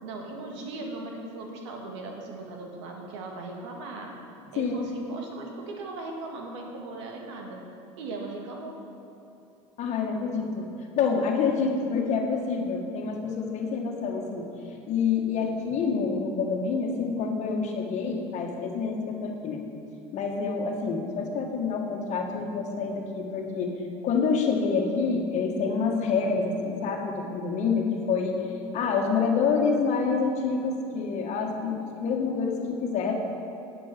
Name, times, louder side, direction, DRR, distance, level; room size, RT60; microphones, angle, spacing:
voice 1, 0.0-4.1 4.5-7.6 8.0-8.8 11.9-12.2, right 2 dB, 85° right, 1 dB, 1.8 m, -38 dB
voice 2, 4.6-4.9 9.8-10.7 11.0-14.5 14.9-19.6 20.1-23.7 24.0-28.4 28.7-33.1, left 5 dB, 50° left, 2 dB, 1.7 m, -27 dB
10.0 x 8.6 x 5.9 m, 2.8 s
supercardioid pair, 95°, 15 cm